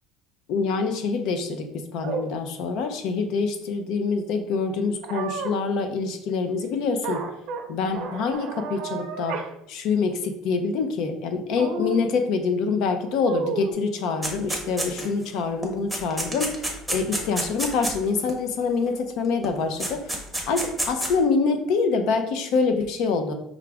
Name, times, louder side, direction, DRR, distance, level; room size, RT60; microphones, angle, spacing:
voice 1, 0.5-1.7 1.9-7.2 7.7-9.4 9.7-20.0 20.5-23.3, left 4 dB, 65° left, 6 dB, 0.5 m, -25 dB
sound 1, 2.0-2.3 5.0-5.6 7.0-7.6 7.9-9.5 9.8-9.9 11.5-12.1 13.2-13.7, right 4 dB, 65° right, 0.6 m, -31 dB
sound 2, 14.2-15.2 15.6-18.3 19.4-19.5 19.8-21.1, right 1 dB, ahead, 0.8 m, -29 dB
4.9 x 2.4 x 3.3 m, 0.79 s
cardioid pair, 135°, 0 cm